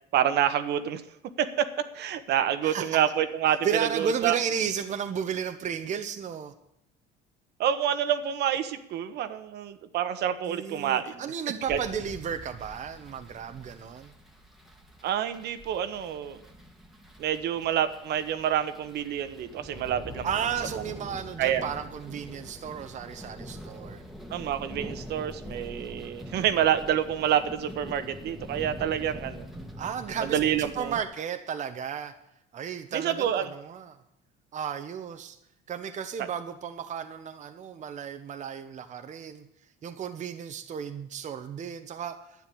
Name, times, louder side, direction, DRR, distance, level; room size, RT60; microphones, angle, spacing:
voice 1, 0.1-1.0 1.4-1.6 1.9-3.7 3.9-4.3 7.6-11.2 11.7-11.8 15.0-16.4 17.2-20.3 21.4-21.6 24.3-29.5 30.2-31.0 32.9-33.5 36.2-36.3, right 10 dB, 60° right, 10 dB, 1.2 m, -27 dB
voice 2, 2.6-3.0 3.6-6.5 10.4-14.1 20.2-24.0 29.8-32.1 32.5-34.0 34.5-35.4 35.7-39.5 39.8-42.3, right 7 dB, 40° right, 7 dB, 1.0 m, -33 dB
sound 1, 11.7-31.0, equal, ahead, 1.9 m, -44 dB
10.5 x 9.3 x 8.5 m, 0.81 s
cardioid pair, 105°, 19 cm